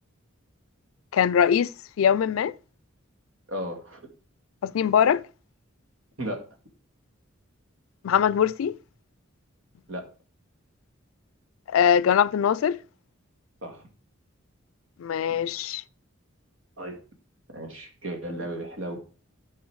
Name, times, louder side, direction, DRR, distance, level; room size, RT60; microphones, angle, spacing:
voice 1, 1.1-1.7 2.0-2.5 4.6-5.2 8.0-8.8 11.7-12.8 15.0-15.8, left 8 dB, 80° left, 0.3 m, -22 dB
voice 2, 3.5-4.1 6.2-6.4 9.9-10.1 13.6-13.9 16.8-17.0 17.5-19.2, right 1 dB, 70° right, 2.3 m, -35 dB
12.5 x 4.7 x 4.7 m
head